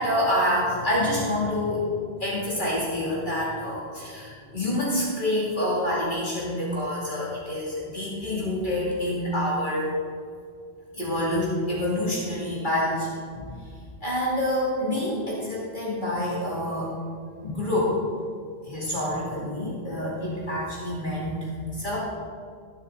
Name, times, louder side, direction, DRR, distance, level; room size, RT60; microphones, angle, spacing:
voice 1, 0.0-1.9 2.2-9.9 10.9-13.1 13.3-13.5 14.0-16.9 17.4-17.9 18.6-22.0, left 1 dB, 50° left, -7 dB, 2.8 m, -27 dB
19.5 x 7.4 x 4.0 m, 2.1 s
omnidirectional pair, 1.1 m